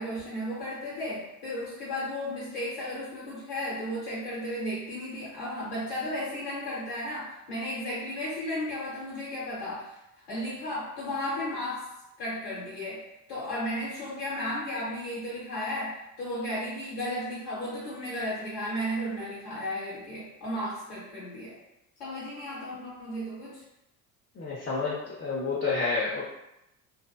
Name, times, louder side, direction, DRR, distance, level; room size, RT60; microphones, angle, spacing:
voice 1, 0.0-10.0 10.3-11.8 12.2-21.6 22.0-23.6, left 1 dB, 70° left, -8 dB, 1.1 m, -34 dB
voice 2, 24.4-26.2, left 4 dB, 25° left, -7 dB, 0.6 m, -29 dB
2.6 x 2.0 x 2.3 m, 0.88 s
hypercardioid pair, 55°, 49 cm